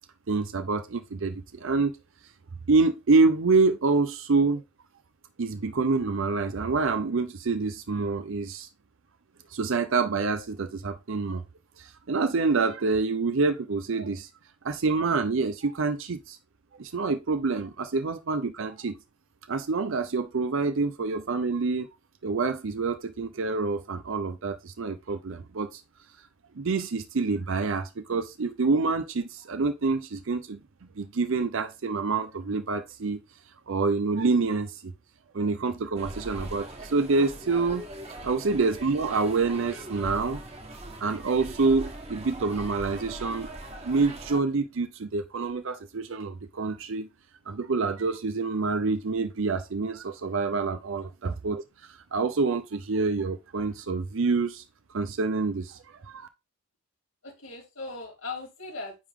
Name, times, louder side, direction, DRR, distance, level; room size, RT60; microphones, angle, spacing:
voice 1, 0.3-1.9 2.7-4.6 5.4-8.7 9.5-11.4 11.8-14.3 14.6-16.4 16.8-19.0 19.5-21.9 22.2-25.8 26.6-30.6 31.0-33.2 33.7-34.9 35.3-37.8 38.2-40.4 41.0-43.5 43.8-47.1 47.5-51.6 51.9-54.6 54.9-56.3, right 4 dB, 65° right, 0.6 m, -27 dB
sound 1, 36.0-44.4, right 1 dB, 30° right, 1.3 m, -41 dB
voice 2, 57.2-59.0, left 3 dB, 75° left, 4.1 m, -39 dB
9.5 x 3.6 x 3.6 m
head